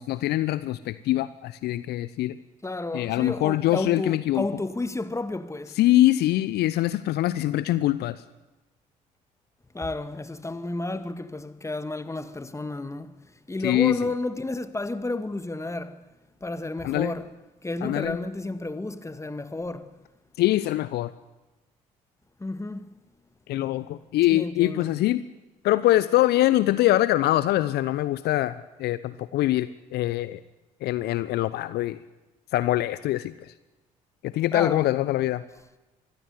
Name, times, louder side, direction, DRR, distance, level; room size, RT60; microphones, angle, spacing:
voice 1, 0.0-2.4 2.9-4.4 5.7-8.2 13.6-14.0 16.8-17.1 17.8-18.2 20.4-21.1 23.5-25.2 25.6-30.4 30.8-32.0 32.5-33.5 34.2-35.4, left 15 dB, 65° left, 0.9 m, -23 dB
voice 2, 2.6-5.8 9.7-13.1 13.5-16.0 16.4-17.3 17.6-19.9 22.4-22.9 24.3-24.9 34.5-34.9, left 2 dB, 15° left, 1.9 m, -31 dB
24.0 x 16.0 x 9.5 m
figure-of-eight pair, 45°, 19 cm